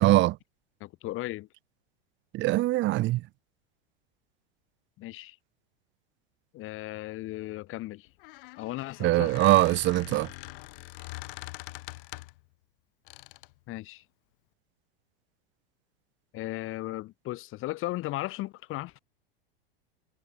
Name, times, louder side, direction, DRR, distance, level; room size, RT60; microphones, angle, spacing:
voice 1, 0.0-0.4 2.3-3.2 9.0-10.3, right 18 dB, 40° right, 1.1 m, -22 dB
voice 2, 0.8-1.5 5.0-5.4 6.5-8.1 8.6-9.3 13.7-14.0 16.3-19.0, left 17 dB, 45° left, 4.8 m, -36 dB
Squeak, 8.1-12.5 13.1-13.6, left 22 dB, 65° left, 6.7 m, -43 dB
hypercardioid pair, 105°, 30 cm